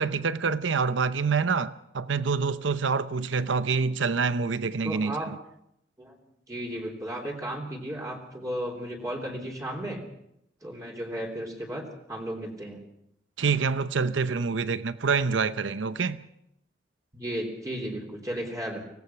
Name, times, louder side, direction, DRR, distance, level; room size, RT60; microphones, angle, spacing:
voice 1, 0.0-5.2 13.4-16.2, right 5 dB, 90° right, 0.7 m, -26 dB
voice 2, 4.8-5.3 6.0-6.1 6.5-10.0 10.6-12.8 17.1-18.8, right 1 dB, 20° right, 3.4 m, -34 dB
25.0 x 18.0 x 5.8 m
head